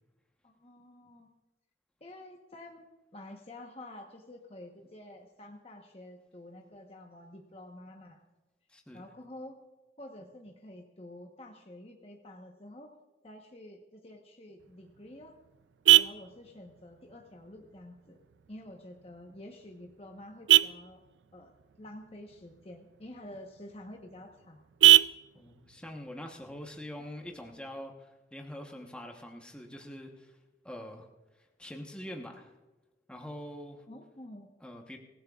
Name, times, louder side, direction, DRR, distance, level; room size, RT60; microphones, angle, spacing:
voice 1, 0.4-1.3 2.0-2.8 3.1-8.2 8.9-9.6 10.0-12.9 13.2-15.3 16.0-18.2 18.5-21.0 21.3-21.5 21.8-24.6 33.9-34.5, left 1 dB, 35° left, 2 dB, 1.1 m, -49 dB
voice 2, 8.7-9.1 25.3-30.4 30.6-31.1 31.4-32.5 33.1-33.8 34.6-35.0, left 1 dB, 5° left, 1 dB, 1.1 m, -44 dB
Vehicle horn car horn honking, 14.6-27.6, right 15 dB, 85° right, 0.4 m, -29 dB
25.0 x 15.5 x 2.4 m, 1.1 s
head